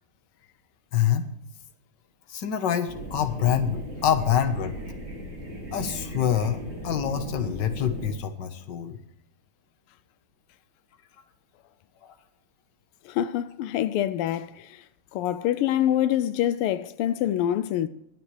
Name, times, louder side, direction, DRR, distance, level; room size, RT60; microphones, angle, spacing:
voice 1, 0.9-1.3 2.3-4.7 5.7-9.0 12.0-12.2, left 9 dB, 60° left, 1.7 m, -26 dB
sound 1, 2.9-8.1, right 1 dB, 30° right, 3.8 m, -37 dB
voice 2, 13.1-14.8 15.1-17.9, left 11 dB, 85° left, 1.5 m, -25 dB
23.5 x 8.7 x 3.3 m
omnidirectional pair, 2.4 m